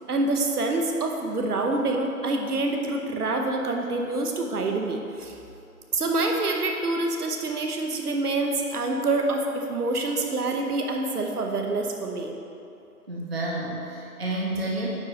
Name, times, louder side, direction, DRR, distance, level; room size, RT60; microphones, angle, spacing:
voice 1, 0.1-5.3 5.9-12.3, right 2 dB, 75° right, 2 dB, 0.9 m, -26 dB
voice 2, 13.1-14.9, right 2 dB, 40° right, -3 dB, 0.5 m, -30 dB
9.1 x 3.2 x 3.7 m, 2.7 s
figure-of-eight pair, 170°, 47 cm